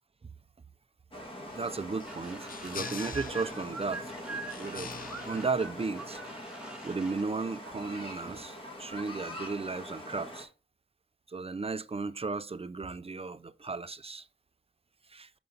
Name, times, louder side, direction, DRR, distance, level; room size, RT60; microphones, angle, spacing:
sound 1, 1.1-10.4, equal, 25° left, 2.2 m, -43 dB
sound 2, 1.5-6.5, left 6 dB, 50° left, 0.4 m, -46 dB
voice 1, 1.5-4.9 5.3-6.2 6.8-10.5 11.3-14.3 15.1-15.3, right 4 dB, 30° right, 0.5 m, -35 dB
sound 3, 2.0-7.2, right 3 dB, 5° right, 1.6 m, -43 dB
6.8 x 5.5 x 3.9 m
wide cardioid pair, 115°, 19 cm